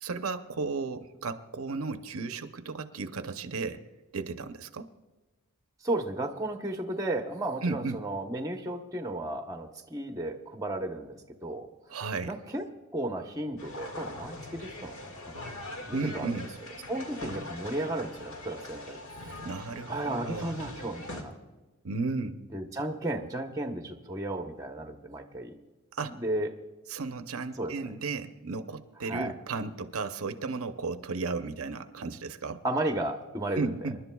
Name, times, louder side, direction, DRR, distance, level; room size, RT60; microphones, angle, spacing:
voice 1, 0.0-3.8 4.1-4.9 7.6-8.0 11.9-12.3 15.9-16.5 19.4-20.5 21.8-22.5 25.9-26.2 26.9-32.6 33.5-34.0, right 4 dB, 70° right, 8 dB, 0.7 m, -34 dB
voice 2, 5.8-11.2 11.4-11.7 12.3-12.6 12.9-15.3 15.9-16.3 16.9-19.5 19.9-21.3 22.5-25.6 26.0-26.5 27.5-28.0 29.0-29.3 32.6-33.7, right 1 dB, 15° right, 4 dB, 0.9 m, -34 dB
sound 1, 13.6-21.2, left 1 dB, 65° left, 1.9 m, -42 dB
27.0 x 11.5 x 2.3 m, 1.1 s
head